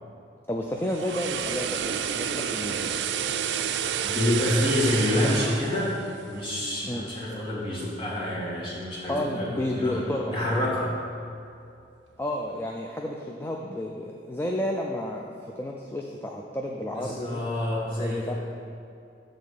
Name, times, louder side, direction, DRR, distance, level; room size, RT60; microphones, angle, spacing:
voice 1, 0.5-3.1 5.2-5.4 6.8-7.0 9.1-10.3 12.2-15.2 15.6-17.4 18.0-18.3, left 1 dB, 15° left, 0 dB, 0.3 m, -31 dB
sound 1, 0.7-6.9 7.2-7.4, right 8 dB, 80° right, 0.4 m, -30 dB
voice 2, 4.0-10.0 10.3-10.9 16.9-18.3, left 1 dB, 30° left, -7 dB, 1.9 m, -28 dB
7.2 x 3.9 x 6.5 m, 2.5 s
head